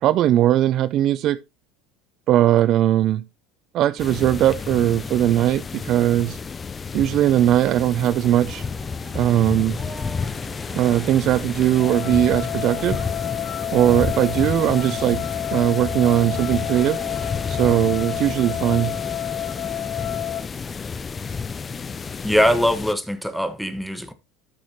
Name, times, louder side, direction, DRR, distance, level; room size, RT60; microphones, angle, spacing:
voice 1, 0.0-1.4 2.3-3.2 3.7-6.4 6.9-8.6 9.1-9.8 10.8-13.0 13.7-15.2 15.5-17.0 17.5-18.9, right 12 dB, 55° right, 0.5 m, -19 dB
sound 1, 4.0-22.9, left 5 dB, 25° left, 0.5 m, -31 dB
sound 2, 7.9-17.7, right 3 dB, 25° right, 2.9 m, -44 dB
sound 3, 11.7-20.4, left 11 dB, 55° left, 1.2 m, -30 dB
voice 2, 22.2-24.1, equal, ahead, 1.5 m, -21 dB
13.0 x 6.4 x 3.0 m
hypercardioid pair, 85°, 0 cm